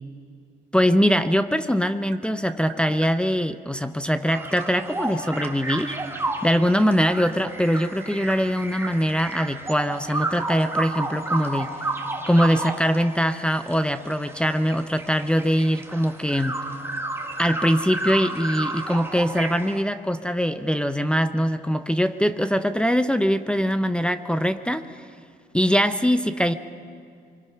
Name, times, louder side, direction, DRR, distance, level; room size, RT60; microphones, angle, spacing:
voice 1, 0.7-6.0 6.4-11.7 12.3-16.6 17.4-25.0 25.5-26.5, equal, 5° left, 8 dB, 0.8 m, -22 dB
Tap, 1.5-3.2 4.5-6.6 7.4-9.6 9.9-11.9, right 8 dB, 85° right, 2.9 m, -46 dB
sound 1, 4.3-19.8, right 2 dB, 10° right, 1.8 m, -32 dB
24.5 x 23.5 x 5.8 m, 2.3 s
cardioid pair, 90°, 20 cm